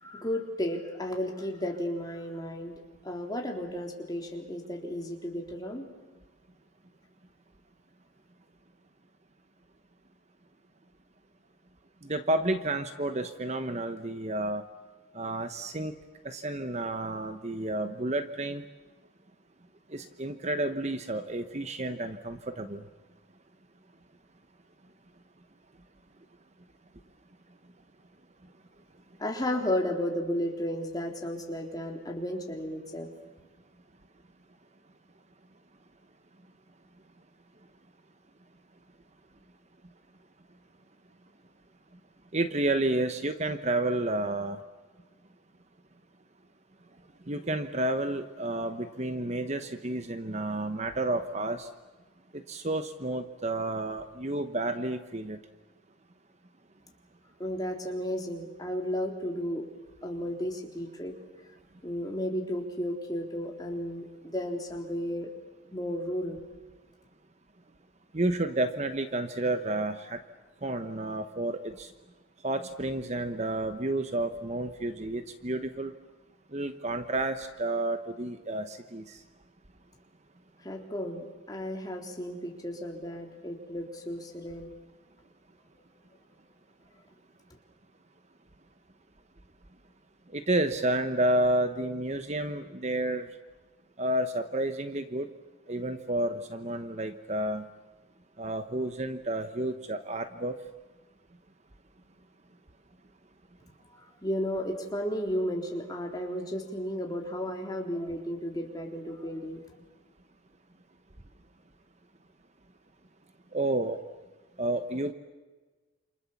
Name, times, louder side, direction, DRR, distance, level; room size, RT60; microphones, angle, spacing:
voice 1, 0.0-2.8 3.0-5.9 29.2-33.1 57.4-59.6 60.0-61.2 61.8-65.3 65.7-66.4 80.6-84.7 103.9-109.6, equal, 20° left, 1 dB, 3.7 m, -33 dB
voice 2, 12.0-14.6 15.1-15.9 16.2-18.6 19.9-22.8 42.3-44.6 47.3-51.7 52.3-55.4 68.1-70.2 70.6-71.9 72.4-75.9 76.5-79.2 90.3-93.3 94.0-95.3 95.7-97.7 98.4-100.5 113.5-114.0 114.6-115.1, right 1 dB, 35° right, 9 dB, 1.1 m, -30 dB
28.0 x 28.0 x 7.3 m, 1.3 s
head